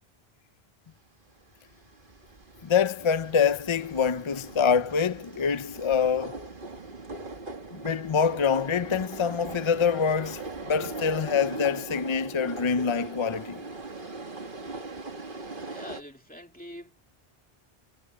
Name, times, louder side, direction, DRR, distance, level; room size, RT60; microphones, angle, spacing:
sound 1, 1.6-16.0, right 3 dB, 55° right, 2.2 m, -40 dB
voice 1, 2.6-6.5 7.7-13.6, left 6 dB, 40° left, 0.5 m, -25 dB
voice 2, 15.7-17.0, equal, 10° left, 2.5 m, -44 dB
omnidirectional pair, 1.0 m